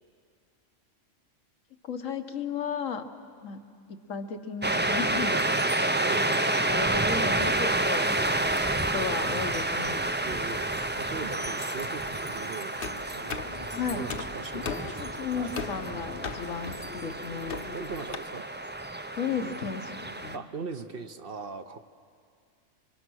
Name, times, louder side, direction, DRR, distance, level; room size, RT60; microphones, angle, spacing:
voice 1, 1.8-3.0 3.4-3.6 3.9-5.4 5.9-8.4 8.8-10.0 13.7-14.0 14.5-17.8 19.2-20.0 20.2-20.4, left 6 dB, 80° left, 6 dB, 1.5 m, -34 dB
Vent a Denia, 4.6-20.4, right 2 dB, 15° right, 0.3 m, -29 dB
voice 2, 10.2-13.5 13.9-15.5 17.7-18.5 20.3-21.8, right 5 dB, 50° right, 8 dB, 0.9 m, -40 dB
sound 1, 12.8-18.1, left 5 dB, 50° left, 1.0 m, -39 dB
28.5 x 24.0 x 6.3 m, 2.3 s
omnidirectional pair, 1.3 m